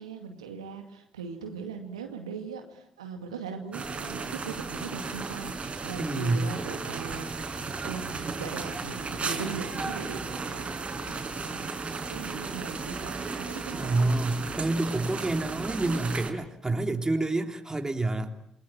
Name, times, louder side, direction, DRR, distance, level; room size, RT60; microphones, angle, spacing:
voice 1, 0.0-10.7 11.0-11.7 12.1-14.1, right 5 dB, 85° right, 5 dB, 2.2 m, -40 dB
sound 1, 3.7-16.3, right 4 dB, 40° right, 5.0 m, -35 dB
voice 2, 6.0-6.5 13.8-18.3, right 2 dB, 20° right, 5 dB, 3.4 m, -28 dB
28.5 x 21.5 x 9.2 m, 0.76 s
figure-of-eight pair, 45°, 3 cm